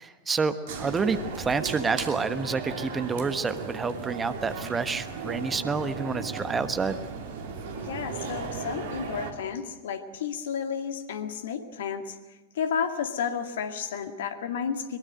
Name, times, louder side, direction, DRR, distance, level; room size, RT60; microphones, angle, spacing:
voice 1, 0.0-7.0, right 4 dB, 15° right, 11 dB, 1.2 m, -28 dB
sound 1, 0.7-9.3, right 5 dB, 55° right, 2.9 m, -36 dB
voice 2, 7.8-12.2 12.6-15.0, left 7 dB, 60° left, 7 dB, 2.1 m, -32 dB
23.0 x 22.5 x 7.9 m, 1.1 s
figure-of-eight pair, 90°, 0 cm